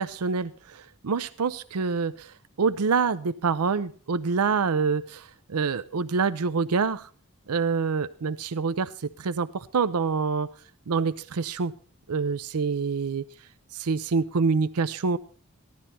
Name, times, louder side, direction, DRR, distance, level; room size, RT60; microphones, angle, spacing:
voice 1, 0.0-7.1 7.5-10.5 10.9-11.7 12.1-13.2 13.7-15.2, right 5 dB, 90° right, 13 dB, 0.6 m, -26 dB
15.5 x 12.0 x 4.2 m, 0.40 s
head